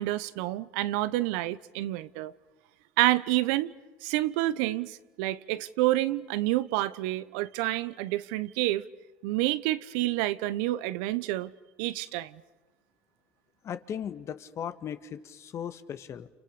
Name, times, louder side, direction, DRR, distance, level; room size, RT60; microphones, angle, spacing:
voice 1, 0.0-2.3 3.0-3.7 4.0-8.8 9.2-11.5 11.8-12.3, right 16 dB, 80° right, 0.9 m, -28 dB
voice 2, 13.6-16.3, left 8 dB, 50° left, 1.7 m, -37 dB
29.5 x 29.0 x 6.7 m
supercardioid pair, 85°, 6 cm